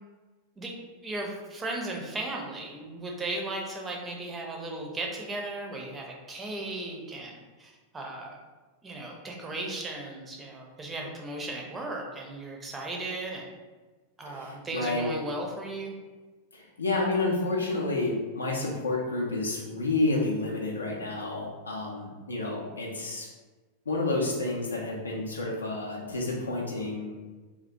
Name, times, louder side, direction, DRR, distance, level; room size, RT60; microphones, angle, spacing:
voice 1, 1.0-8.4 8.8-13.5 14.2-15.9, right 2 dB, 15° right, 0 dB, 0.5 m, -36 dB
voice 2, 14.2-15.1 16.5-23.3 23.9-27.1, left 2 dB, 75° left, -2 dB, 0.4 m, -30 dB
2.3 x 2.1 x 2.6 m, 1.3 s
figure-of-eight pair, 90°, 0 cm